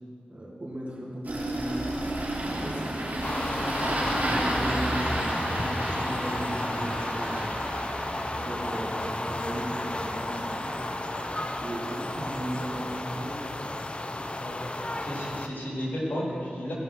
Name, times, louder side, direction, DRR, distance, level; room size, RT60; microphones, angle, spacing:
voice 1, 0.3-1.8 2.4-7.6 8.3-10.8 11.6-13.5, right 1 dB, 40° right, -4 dB, 2.7 m, -37 dB
Engine starting, 1.2-13.7, right 1 dB, 60° right, 2.8 m, -33 dB
sound 1, 3.2-15.5, left 2 dB, 35° left, 0.6 m, -33 dB
voice 2, 14.3-14.6 15.0-16.7, equal, 70° left, -3 dB, 2.7 m, -33 dB
16.5 x 5.5 x 5.9 m, 2.5 s
cardioid pair, 40°, 3 cm